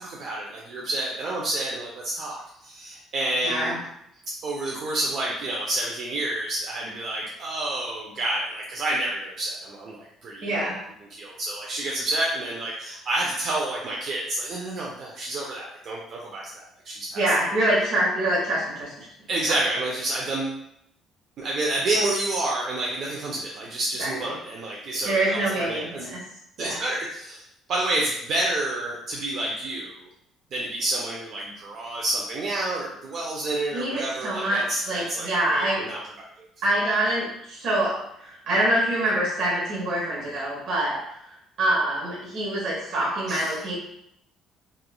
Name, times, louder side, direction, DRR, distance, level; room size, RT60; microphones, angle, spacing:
voice 1, 0.0-3.8 4.4-10.5 11.1-17.2 19.3-20.6 21.4-26.1 26.6-27.4 27.7-30.1 30.5-36.0 36.8-37.0 43.3-43.5, right 2 dB, 45° right, -3 dB, 0.4 m, -29 dB
voice 2, 3.4-3.8 10.4-10.8 17.2-19.1 19.5-19.6 24.0-24.3 25.0-26.2 26.6-26.8 33.7-35.9 36.6-41.0 41.6-43.7, right 1 dB, 65° right, -6 dB, 0.9 m, -25 dB
3.0 x 2.3 x 2.3 m, 0.76 s
cardioid pair, 145°, 0 cm